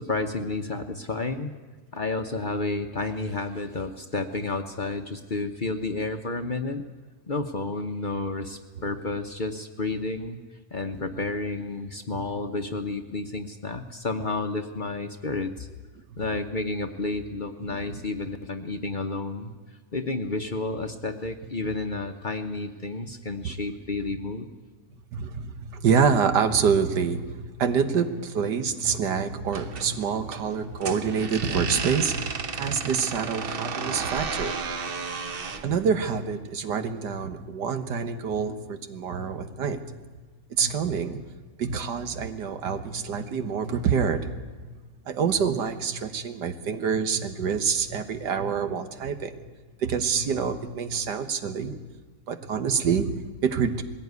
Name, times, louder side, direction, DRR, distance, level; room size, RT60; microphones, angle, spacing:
voice 1, 0.0-1.5 1.9-6.9 7.3-10.4 10.7-15.7 16.2-19.5 19.9-24.5, left 3 dB, 40° left, 6 dB, 0.9 m, -31 dB
voice 2, 25.1-34.7 35.6-40.0 40.5-41.2 41.6-44.7 45.1-49.5 49.8-51.7 52.3-53.8, right 6 dB, 90° right, 9 dB, 1.8 m, -27 dB
sound 1, 29.5-35.7, right 4 dB, 40° right, 1.0 m, -33 dB
20.5 x 16.0 x 9.5 m, 1.4 s
omnidirectional pair, 1.8 m